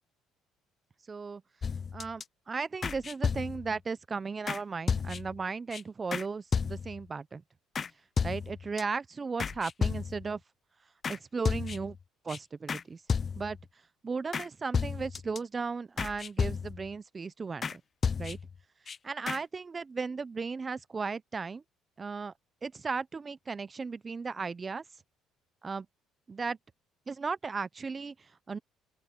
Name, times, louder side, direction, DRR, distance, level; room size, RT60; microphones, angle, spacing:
voice 1, 1.1-1.4 1.9-7.4 8.2-10.4 11.1-12.0 12.2-13.0 13.4-13.6 14.0-17.8 18.2-18.4 19.0-21.6 22.0-22.3 22.6-24.8 25.6-25.9 26.3-26.6 27.1-28.6, right 4 dB, 30° right, 0.9 m, -36 dB
sound 1, 1.6-2.2 2.8-3.8 4.5-4.6 4.9-5.4 5.7-5.8 6.1-6.3 6.5-7.0 7.7-7.9 8.2-8.8 9.4-10.3 11.0-11.2 11.4-12.0 12.3-12.4 12.7-12.8 13.1-13.6 14.3-14.5 14.7-15.4 16.0-16.9 17.6-17.8 18.0-18.6 18.9-19.0 19.3-19.4, left 6 dB, 40° left, 0.4 m, -32 dB
open air
supercardioid pair, 80°, 0 cm